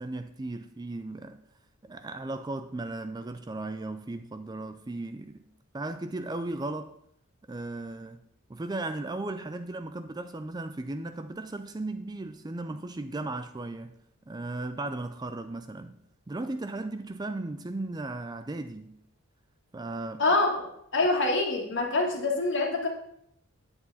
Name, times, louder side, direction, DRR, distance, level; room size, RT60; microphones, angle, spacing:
voice 1, 0.0-1.4 1.8-5.5 5.7-7.0 7.5-8.2 8.5-13.9 14.3-16.0 16.3-19.0 19.7-20.3, right 2 dB, 20° right, 0.4 m, -36 dB
voice 2, 20.2-22.9, left 2 dB, 55° left, 1.9 m, -26 dB
9.7 x 8.3 x 4.1 m
head